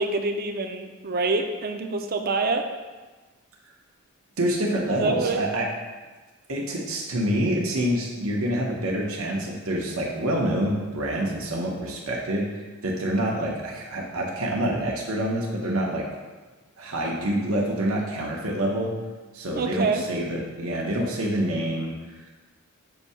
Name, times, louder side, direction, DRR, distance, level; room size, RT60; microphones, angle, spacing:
voice 1, 0.0-2.6 4.9-5.5 19.6-20.0, right 3 dB, 45° right, 5 dB, 0.5 m, -26 dB
voice 2, 4.4-5.7 6.5-12.5 12.8-16.1 16.8-18.9 19.3-21.9, right 1 dB, 85° right, -2 dB, 1.0 m, -26 dB
6.8 x 2.7 x 5.5 m, 1.3 s
head